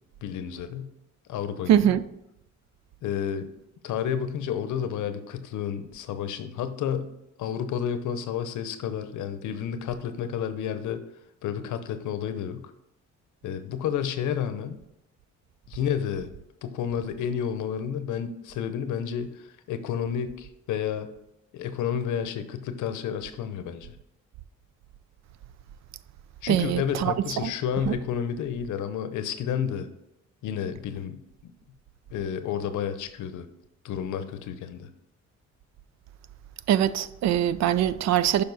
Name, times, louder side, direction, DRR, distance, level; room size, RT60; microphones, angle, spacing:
voice 1, 0.2-0.9 1.3-1.9 3.0-3.5 3.8-7.1 7.4-11.0 11.4-12.6 13.4-14.8 15.7-16.3 16.6-21.1 21.5-23.9 26.4-29.9 30.4-31.2 32.1-33.5 33.8-34.9, left 8 dB, 75° left, 0.8 m, -30 dB
voice 2, 1.7-2.0 26.5-27.1 27.4-27.5 27.9-28.0 36.7-38.4, right 11 dB, 65° right, 0.4 m, -22 dB
6.9 x 5.1 x 4.0 m
cardioid pair, 90°, 30 cm